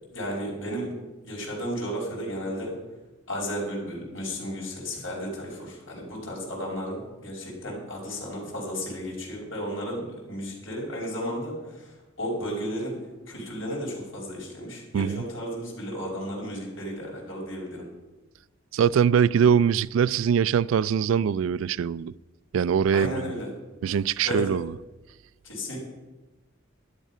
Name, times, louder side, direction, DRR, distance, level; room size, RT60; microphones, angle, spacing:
voice 1, 0.1-0.9 1.2-2.8 3.3-13.0 13.3-17.9 22.9-23.5 24.2-24.5 25.4-25.8, equal, 80° left, 5.1 m, -33 dB
voice 2, 18.7-22.1 22.5-23.1 23.8-24.7, right 7 dB, 85° right, 0.3 m, -22 dB
12.0 x 11.0 x 5.5 m
head